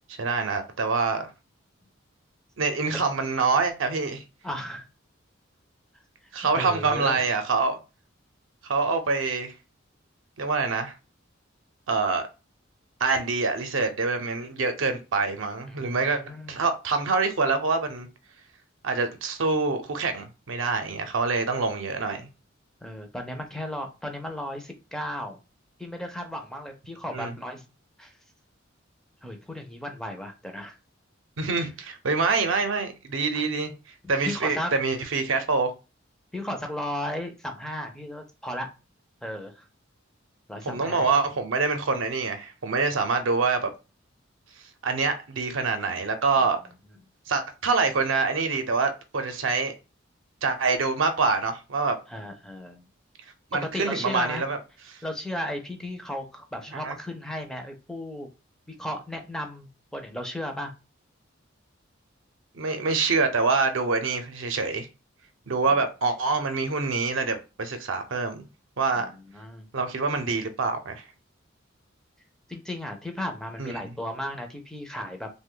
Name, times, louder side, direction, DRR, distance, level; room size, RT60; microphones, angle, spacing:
voice 1, 0.2-1.3 2.6-4.2 6.3-7.8 8.6-9.5 10.4-10.9 11.9-12.3 13.0-16.2 16.5-18.1 18.8-22.3 27.1-27.3 31.4-33.7 34.1-35.7 40.7-43.7 44.8-46.6 47.3-49.7 50.4-52.0 53.5-54.6 56.7-57.0 62.5-64.9 65.5-68.4 68.8-69.1 69.7-71.0 73.6-73.8, right 4 dB, 70° right, 0.6 m, -25 dB
voice 2, 4.4-4.9 6.5-7.2 15.7-16.6 22.8-25.4 25.8-27.6 28.0-28.1 29.2-30.8 33.3-33.5 34.2-34.7 36.3-38.7 39.2-39.7 40.5-41.1 52.1-52.8 53.5-54.5 55.0-58.3 58.7-60.7 69.0-69.1 69.3-69.7 72.5-75.3, left 1 dB, 5° left, 0.4 m, -35 dB
2.9 x 2.2 x 3.7 m
head